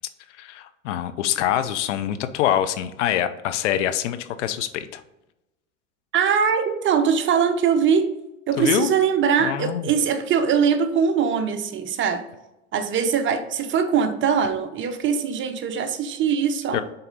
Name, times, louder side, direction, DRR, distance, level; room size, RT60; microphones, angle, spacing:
voice 1, 0.4-5.0 8.6-8.9 9.4-9.9 16.7-16.8, left 11 dB, 70° left, 11 dB, 0.7 m, -25 dB
voice 2, 6.1-8.1 8.5-12.2 12.7-16.8, right 7 dB, 30° right, 8 dB, 0.8 m, -22 dB
6.9 x 4.1 x 4.0 m, 0.96 s
hypercardioid pair, 90°, 37 cm